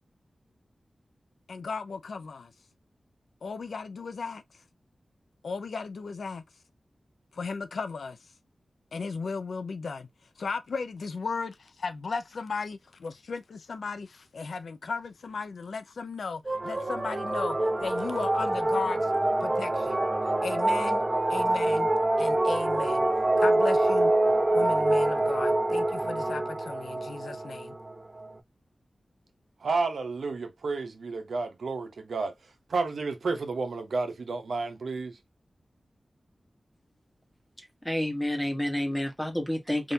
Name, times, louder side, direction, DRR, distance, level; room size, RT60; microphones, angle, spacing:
voice 1, 1.5-2.5 3.4-4.4 5.4-6.4 7.3-8.2 8.9-10.1 10.4-19.1 19.4-20.0 20.4-21.0 21.3-21.9 22.2-23.1 23.4-24.1 24.5-27.7, left 4 dB, 85° left, 0.5 m, -35 dB
sound 1, 16.5-28.3, right 2 dB, 25° right, 0.6 m, -26 dB
voice 2, 29.6-32.3 32.7-35.2, right 3 dB, 85° right, 0.7 m, -31 dB
voice 3, 37.8-39.9, left 1 dB, 5° left, 1.1 m, -29 dB
3.6 x 2.5 x 2.6 m
wide cardioid pair, 80°, 0 cm